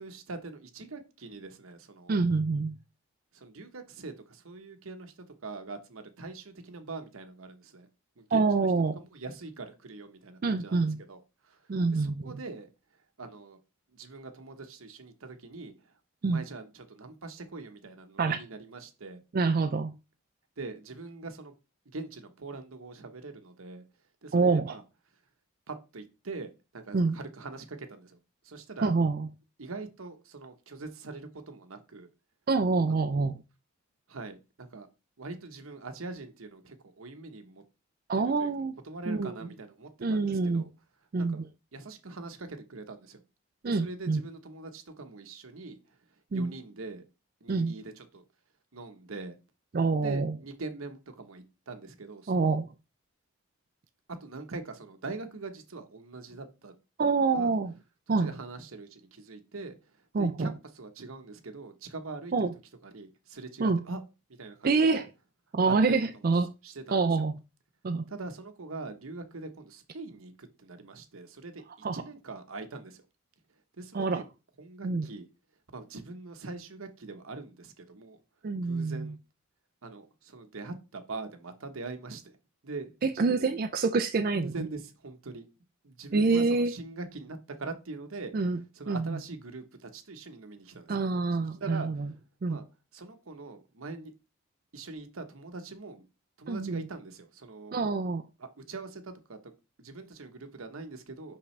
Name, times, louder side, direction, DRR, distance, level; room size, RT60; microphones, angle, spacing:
voice 1, 0.0-2.2 3.3-7.9 8.2-8.7 9.0-10.8 11.1-11.6 11.9-12.7 13.2-13.6 13.9-15.7 16.3-19.2 20.6-21.5 21.9-23.8 24.2-24.8 25.7-28.2 28.4-28.9 29.6-32.1 32.9-33.0 34.1-34.9 35.2-37.6 38.1-38.5 38.8-40.7 41.3-41.4 41.7-43.2 43.6-45.8 46.3-47.0 47.4-48.2 48.7-49.4 50.0-52.6 54.2-56.7 57.0-57.5 58.2-59.8 60.2-62.5 62.8-64.0 64.4-65.1 65.7-66.0 66.6-67.3 68.1-73.0 73.8-74.3 74.6-75.3 75.7-78.2 78.6-79.2 79.8-82.3 82.6-83.6 84.3-85.5 85.8-88.3 88.7-91.0 91.6-92.0 92.5-92.6 92.9-94.1 94.7-96.0 96.4-97.8 98.4-99.4 99.8-101.4, right 3 dB, 85° right, 1.0 m, -43 dB
voice 2, 2.1-2.7 8.3-9.0 10.4-11.0 11.7-12.3 16.2-16.4 18.2-18.4 19.3-19.9 24.3-24.8 26.9-27.2 28.8-29.3 32.5-33.4 38.1-38.7 39.1-39.3 40.0-40.6 41.1-41.5 43.6-44.2 46.3-46.5 47.5-47.7 49.7-50.3 52.3-52.7 57.0-57.7 58.1-58.3 60.1-60.5 62.3-62.5 63.6-63.8 64.6-65.0 65.5-66.5 66.9-67.3 67.8-68.0 71.8-72.0 73.9-74.2 74.8-75.1 78.4-79.1 83.0-84.7 86.1-86.7 88.3-88.6 88.9-89.2 90.9-92.1 92.4-92.6 96.5-96.9 97.7-98.2, right 4 dB, 45° right, 0.4 m, -26 dB
5.8 x 5.4 x 3.2 m
head